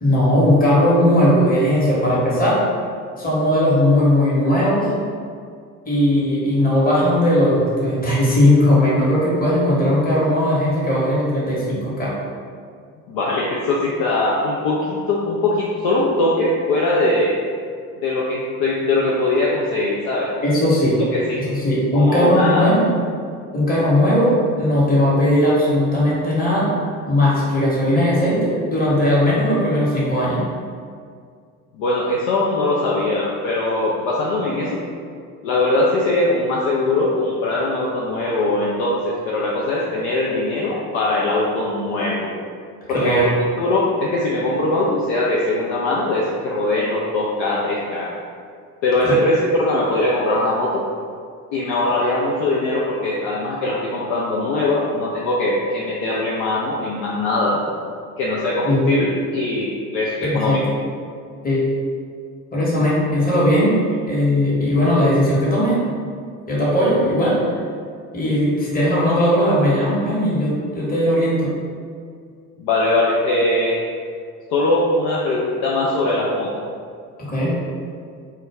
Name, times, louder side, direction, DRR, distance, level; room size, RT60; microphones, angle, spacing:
voice 1, 0.0-2.7 3.2-4.9 5.9-12.2 20.4-21.0 21.5-22.9 23.5-26.8 27.1-30.4 42.9-43.3 49.0-49.1 58.6-58.9 60.2-60.6 61.4-61.7 62.5-65.8 66.5-67.6 68.1-71.5 77.2-77.6, left 1 dB, 20° left, -7 dB, 1.0 m, -18 dB
voice 2, 13.1-17.3 18.0-20.4 21.1-21.4 21.9-22.7 31.8-34.8 35.4-42.3 42.9-48.1 48.8-50.8 51.5-57.6 58.2-60.6 72.6-73.8 74.5-76.5, left 2 dB, 55° left, -4 dB, 0.5 m, -21 dB
2.2 x 2.2 x 3.3 m, 2.2 s
figure-of-eight pair, 60°, 44 cm